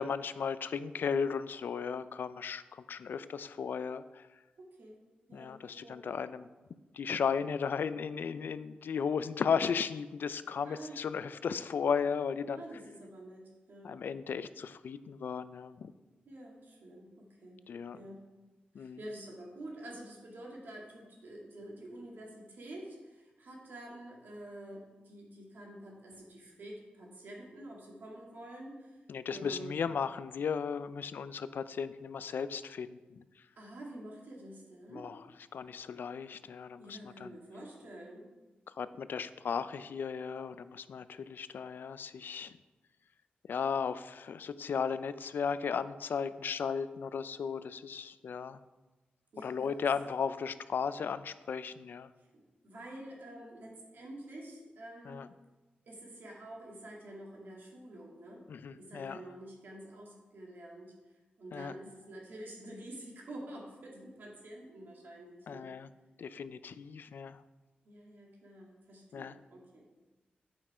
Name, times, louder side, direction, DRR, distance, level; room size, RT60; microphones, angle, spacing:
voice 1, 0.0-4.3 5.3-6.5 6.9-12.6 13.8-15.9 17.7-18.0 18.7-19.0 29.1-33.2 34.9-35.2 35.5-37.3 38.8-42.6 43.5-48.6 49.4-52.1 55.1-55.3 58.5-59.2 61.5-61.8 65.5-65.9 66.2-67.4 69.1-69.4, left 6 dB, 70° left, 14 dB, 0.4 m, -35 dB
voice 2, 4.6-5.0 5.3-6.0 10.6-11.0 12.5-13.9 16.2-17.6 17.9-18.2 18.8-29.0 29.3-29.8 33.6-35.1 36.8-38.3 49.3-49.8 52.2-55.2 55.8-58.4 58.8-60.9 61.4-65.7 67.8-69.9, right 1 dB, 70° right, -2 dB, 2.2 m, -48 dB
8.8 x 5.6 x 4.9 m, 1.2 s
wide cardioid pair, 100°, 3 cm